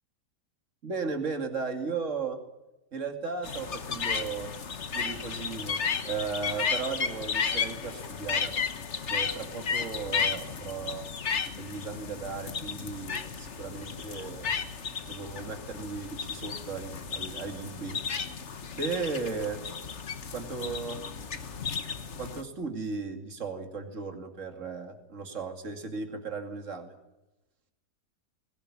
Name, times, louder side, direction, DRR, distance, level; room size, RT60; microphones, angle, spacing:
voice 1, 0.8-2.4 2.9-4.5 4.9-8.5 9.1-11.0 11.6-14.5 15.1-18.0 18.8-19.6 20.3-21.0 22.2-26.9, right 4 dB, 45° right, 6 dB, 2.8 m, -36 dB
sound 1, 3.4-22.4, left 6 dB, 45° left, 1.5 m, -34 dB
21.5 x 17.5 x 9.9 m, 1.0 s
omnidirectional pair, 1.8 m